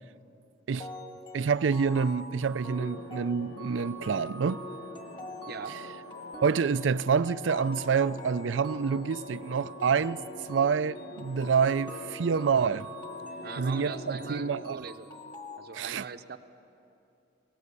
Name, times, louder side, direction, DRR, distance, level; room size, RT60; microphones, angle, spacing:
sound 1, 0.8-15.6, equal, 25° left, 1.7 m, -45 dB
voice 1, 1.3-4.6 6.4-10.2 10.5-12.9 13.6-14.8 15.7-16.1, right 6 dB, 85° right, 0.4 m, -27 dB
sound 2, 2.7-14.7, left 2 dB, 80° left, 1.1 m, -45 dB
voice 2, 5.5-5.8 13.4-15.2 15.6-16.4, right 5 dB, 55° right, 0.7 m, -41 dB
20.0 x 18.5 x 8.3 m
head